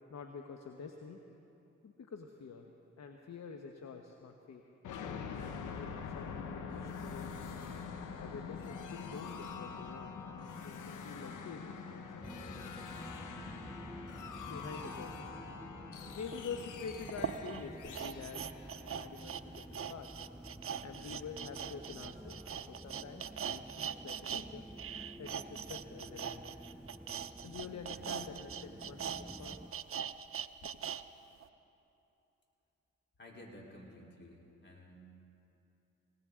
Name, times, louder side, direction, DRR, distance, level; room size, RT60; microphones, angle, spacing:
voice 1, 0.1-1.2 1.8-2.7 3.0-4.6 5.4-7.5 8.2-10.1 10.4-12.8 14.5-15.4 16.1-20.1 20.8-24.7 25.2-26.5 27.4-29.8, left 5 dB, 60° left, 4 dB, 1.0 m, -47 dB
sound 1, 4.8-19.5, left 5 dB, 80° left, 1.1 m, -45 dB
sound 2, 12.2-29.7, equal, 5° right, 0.5 m, -51 dB
sound 3, 16.3-16.4 17.1-24.5 24.7-31.0 31.4-31.5, right 8 dB, 45° right, 0.6 m, -41 dB
voice 2, 33.2-35.0, left 1 dB, 35° left, -2 dB, 3.8 m, -53 dB
19.0 x 19.0 x 3.7 m, 2.9 s
supercardioid pair, 50°, 30 cm